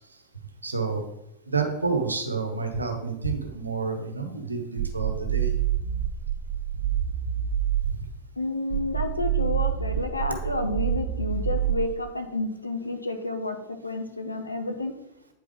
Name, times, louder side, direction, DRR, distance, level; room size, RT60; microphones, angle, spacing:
voice 1, 0.6-1.0 1.5-5.5 7.8-8.0, right 4 dB, 80° right, 4 dB, 1.1 m, -29 dB
sound 1, 4.8-8.0 8.7-12.0, right 10 dB, 40° right, 1.7 m, -27 dB
voice 2, 8.4-15.0, left 2 dB, 85° left, 6 dB, 0.9 m, -30 dB
8.9 x 4.8 x 3.6 m, 0.87 s
figure-of-eight pair, 90°, 0 cm